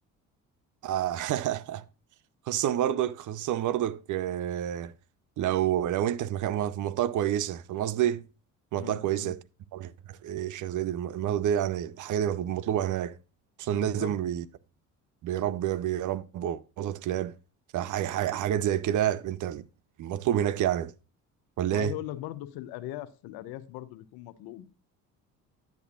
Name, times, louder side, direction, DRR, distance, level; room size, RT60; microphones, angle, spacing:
voice 1, 0.8-1.8 2.5-4.9 5.4-8.3 8.7-9.4 9.7-13.2 13.6-14.4 15.2-17.3 17.7-19.6 20.0-20.9 21.6-21.9, right 11 dB, 50° right, 0.6 m, -29 dB
voice 2, 8.7-9.3 13.7-14.2 18.3-18.4 21.7-24.7, left 14 dB, 65° left, 0.8 m, -40 dB
10.5 x 8.2 x 2.4 m
hypercardioid pair, 60°, 39 cm